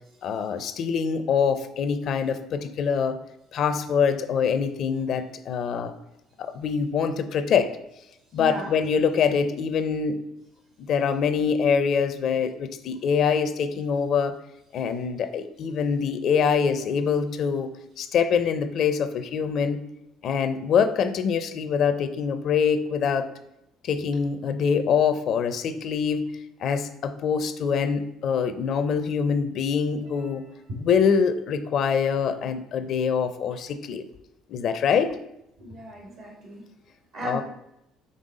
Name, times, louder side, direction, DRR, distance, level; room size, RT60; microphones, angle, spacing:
voice 1, 0.2-3.2 3.5-5.9 6.4-7.7 8.3-10.2 10.8-14.3 14.7-17.7 18.0-19.8 20.2-23.3 23.8-26.3 26.6-30.5 30.8-34.1 34.5-35.2 37.2-37.4, left 6 dB, 60° left, 11 dB, 0.5 m, -24 dB
voice 2, 8.3-8.7 35.6-36.6 37.1-37.4, left 1 dB, 70° right, 0 dB, 2.1 m, -35 dB
5.5 x 3.6 x 4.9 m, 0.83 s
hypercardioid pair, 65°, 0 cm